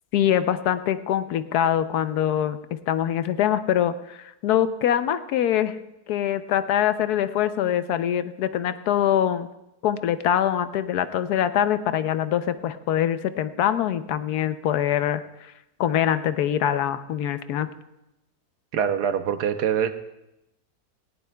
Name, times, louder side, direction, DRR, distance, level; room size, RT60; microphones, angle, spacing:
voice 1, 0.1-5.8 6.1-9.5 9.8-15.5 15.8-17.7, left 10 dB, 75° left, 12 dB, 1.1 m, -24 dB
voice 2, 18.7-19.9, right 8 dB, 80° right, 9 dB, 1.3 m, -24 dB
18.5 x 16.5 x 2.2 m, 0.88 s
omnidirectional pair, 1.7 m